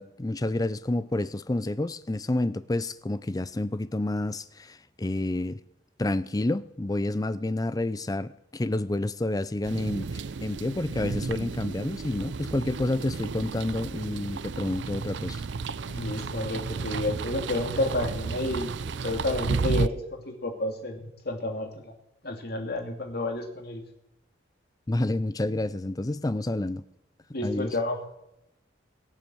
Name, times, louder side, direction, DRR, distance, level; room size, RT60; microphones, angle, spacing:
voice 1, 0.0-5.6 6.0-15.4 24.9-26.8 27.4-27.7, left 2 dB, 20° left, 0.5 m, -29 dB
sound 1, 9.6-19.9, right 4 dB, 70° right, 0.5 m, -33 dB
voice 2, 15.9-21.9 22.2-23.8 27.3-28.0, left 2 dB, 55° left, 2.6 m, -30 dB
22.5 x 7.5 x 7.0 m
head